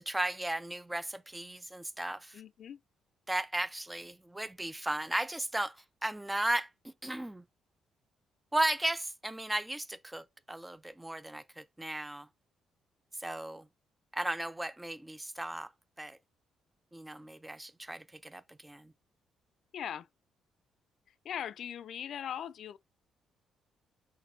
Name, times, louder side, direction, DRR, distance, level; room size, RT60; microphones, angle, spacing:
voice 1, 0.0-2.4 3.3-5.8 6.0-7.4 8.5-12.3 13.2-13.7 14.1-15.7 16.0-16.2 16.9-18.9, right 1 dB, 10° right, 0.4 m, -35 dB
voice 2, 2.3-2.8 19.7-20.1 21.1-22.8, left 9 dB, 65° left, 0.3 m, -40 dB
5.9 x 3.1 x 2.7 m
cardioid pair, 90°, 0 cm